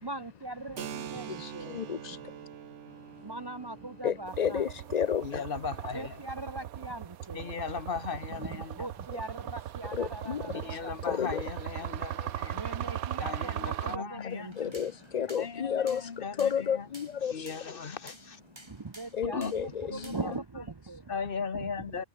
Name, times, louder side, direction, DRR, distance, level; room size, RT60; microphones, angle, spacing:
voice 1, 0.0-1.8 3.2-4.6 5.9-7.5 8.4-11.2 12.5-14.5 18.7-19.4 19.9-21.1, right 2 dB, 40° right, 0.3 m, -40 dB
Keyboard (musical), 0.8-8.1, right 9 dB, 60° right, 1.2 m, -46 dB
voice 2, 1.3-2.5 2.9-3.4 3.9-5.5 9.1-9.2 9.9-11.4 14.2-17.5 19.1-20.1, left 8 dB, 75° left, 0.3 m, -33 dB
sound 1, 4.3-14.0, right 11 dB, 75° right, 1.3 m, -38 dB
voice 3, 5.2-6.2 7.3-8.9 10.5-12.6 13.2-14.7 15.4-16.9 17.3-18.4 19.3-19.5 19.9-20.4 21.1-22.0, left 5 dB, 40° left, 1.3 m, -37 dB
sound 2, 14.3-20.4, right 1 dB, 20° right, 6.5 m, -53 dB
omnidirectional pair, 1.5 m